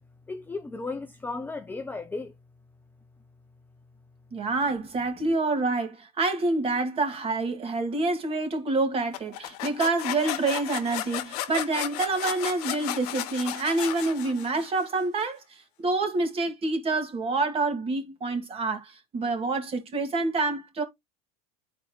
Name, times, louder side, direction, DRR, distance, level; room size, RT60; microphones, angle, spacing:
voice 1, 0.3-2.3, left 3 dB, 10° left, 0.5 m, -35 dB
voice 2, 4.3-15.4 15.8-20.8, right 3 dB, 30° right, 1.9 m, -27 dB
sound 1, 9.1-14.8, left 14 dB, 75° left, 0.9 m, -34 dB
10.5 x 4.3 x 2.3 m
supercardioid pair, 120°, 19 cm